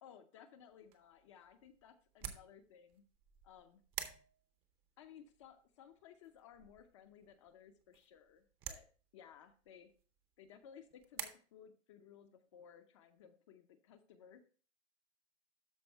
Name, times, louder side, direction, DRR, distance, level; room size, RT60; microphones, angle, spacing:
voice 1, 0.0-3.0 3.4-3.8 5.0-8.9 9.1-9.9 10.4-14.4, left 8 dB, 25° left, 8 dB, 0.5 m, -59 dB
sound 1, 0.7-11.3, right 9 dB, 15° right, 0.6 m, -52 dB
12.5 x 4.4 x 4.4 m, 0.40 s
hypercardioid pair, 155°, 38 cm